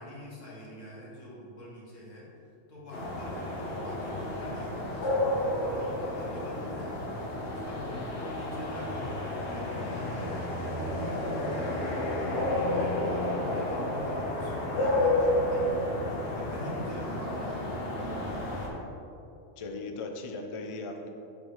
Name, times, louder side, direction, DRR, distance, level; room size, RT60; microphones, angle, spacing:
voice 1, 0.0-2.3 2.7-6.9 7.6-15.7 16.3-17.8, left 1 dB, 80° left, -7 dB, 2.2 m, -45 dB
sound 1, 2.9-18.7, left 1 dB, 65° left, 1.5 m, -31 dB
voice 2, 19.6-21.1, left 3 dB, 40° left, 3 dB, 0.4 m, -38 dB
8.3 x 6.2 x 3.2 m, 2.7 s
omnidirectional pair, 1.3 m